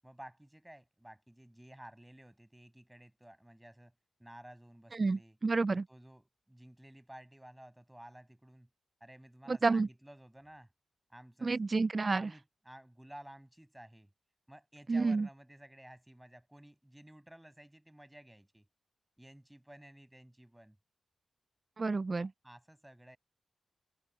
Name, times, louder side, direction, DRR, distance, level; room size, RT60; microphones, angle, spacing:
voice 1, 0.0-3.9 4.2-5.4 5.7-8.7 9.0-10.7 11.1-11.6 12.1-14.1 14.5-18.7 19.2-20.8 22.2-23.2, right 1 dB, 10° right, 8.0 m, -54 dB
voice 2, 4.9-5.8 9.5-9.9 11.4-12.3 14.9-15.3 21.8-22.3, right 3 dB, 40° right, 0.3 m, -30 dB
cardioid pair, 60°, 0 cm